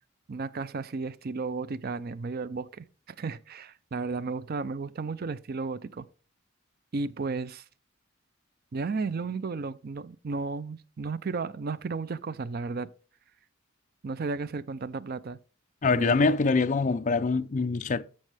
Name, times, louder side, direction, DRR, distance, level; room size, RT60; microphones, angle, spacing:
voice 1, 0.3-2.9 3.2-6.1 6.9-7.6 8.7-12.9 14.0-15.4 15.8-16.4, right 4 dB, 50° right, 0.5 m, -33 dB
voice 2, 15.8-18.0, left 4 dB, 40° left, 0.4 m, -24 dB
14.0 x 5.4 x 3.3 m
head